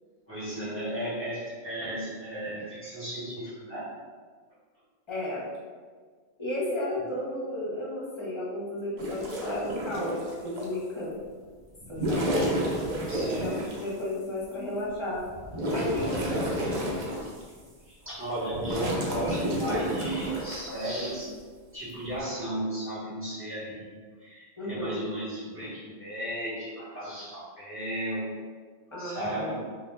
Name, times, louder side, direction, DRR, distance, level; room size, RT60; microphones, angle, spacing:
voice 1, 0.3-3.9 13.1-13.8 16.0-16.5 17.9-21.3 21.7-28.3 29.0-29.6, right 1 dB, 15° right, -9 dB, 0.9 m, -35 dB
voice 2, 5.1-5.5 6.4-11.2 11.9-12.4 13.3-15.3 15.7-16.9 24.6-25.0 28.9-29.6, left 1 dB, 30° left, -7 dB, 0.9 m, -33 dB
sound 1, 9.0-10.7 11.8-13.9 14.5-14.6 15.1-17.6 18.1-20.7 21.9-22.2, equal, 50° right, 0.7 m, -31 dB
2.8 x 2.2 x 3.3 m, 1.5 s
omnidirectional pair, 1.1 m